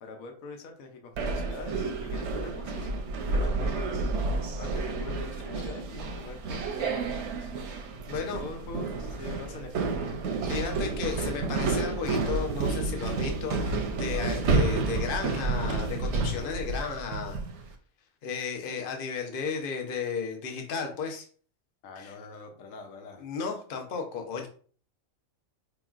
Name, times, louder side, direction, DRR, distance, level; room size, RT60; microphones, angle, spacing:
voice 1, 0.0-7.5 8.1-9.8 21.8-23.2, left 3 dB, 75° left, 4 dB, 1.1 m, -44 dB
sound 1, 1.2-17.6, right 3 dB, 60° right, 0.8 m, -30 dB
voice 2, 8.1-8.4 10.5-17.4 18.2-21.2 22.0-22.1 23.2-24.5, left 5 dB, 45° left, 2 dB, 0.8 m, -34 dB
4.7 x 3.0 x 2.4 m, 0.44 s
omnidirectional pair, 1.5 m